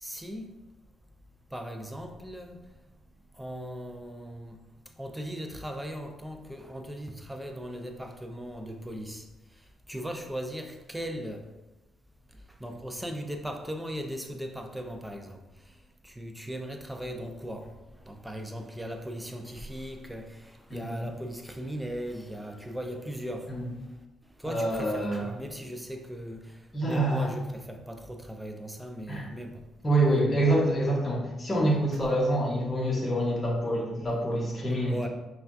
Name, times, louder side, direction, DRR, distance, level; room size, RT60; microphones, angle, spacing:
voice 1, 0.0-0.5 1.5-2.6 3.4-4.6 5.0-9.2 9.9-11.4 12.6-15.4 16.0-17.7 18.1-23.5 24.4-26.4 26.8-29.6 34.9-35.1, equal, 5° right, 0.5 m, -38 dB
voice 2, 20.7-21.0 23.5-23.6 24.4-25.3 26.7-27.3 29.1-29.2 29.8-34.9, right 1 dB, 25° left, 1.2 m, -26 dB
5.4 x 2.3 x 2.6 m
cardioid pair, 90°, 0 cm